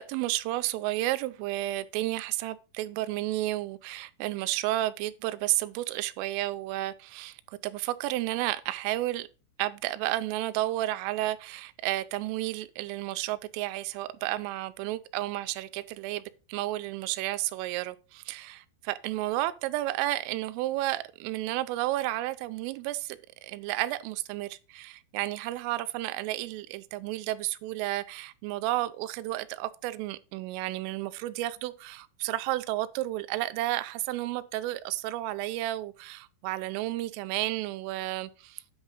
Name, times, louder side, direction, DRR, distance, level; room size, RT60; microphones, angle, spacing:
voice 1, 0.0-9.3 9.6-16.2 16.5-38.6, right 16 dB, 85° right, 3.2 m, -32 dB
10.0 x 4.8 x 5.5 m
omnidirectional pair, 5.8 m